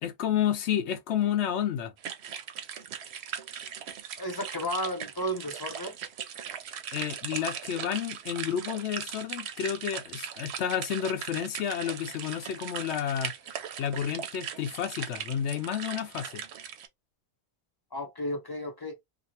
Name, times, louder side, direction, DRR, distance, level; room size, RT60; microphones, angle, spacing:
voice 1, 0.0-1.9 6.9-13.3 13.8-16.4, left 9 dB, 80° left, 0.9 m, -30 dB
sound 1, 2.0-16.9, right 8 dB, 80° right, 0.8 m, -39 dB
voice 2, 4.2-6.0 17.9-19.0, equal, 30° left, 0.4 m, -33 dB
2.6 x 2.6 x 2.7 m
omnidirectional pair, 1.1 m